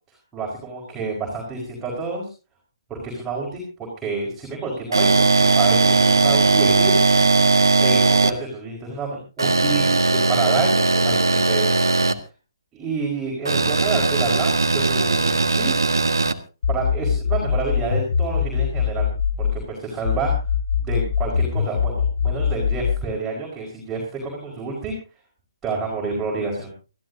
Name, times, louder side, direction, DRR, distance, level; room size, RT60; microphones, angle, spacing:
voice 1, 0.3-2.3 2.9-3.6 4.0-7.0 7.8-11.7 12.7-15.7 16.7-19.1 19.4-20.3 20.8-24.9 25.6-26.7, right 4 dB, 10° right, -2 dB, 5.0 m, -29 dB
sound 1, 4.9-8.3 9.4-12.1 13.5-16.3, right 3 dB, 70° right, 1.6 m, -18 dB
sound 2, 16.6-19.6 20.0-23.1, left 7 dB, 60° left, 1.1 m, -22 dB
25.0 x 14.5 x 2.7 m, 0.33 s
figure-of-eight pair, 140°, 2 cm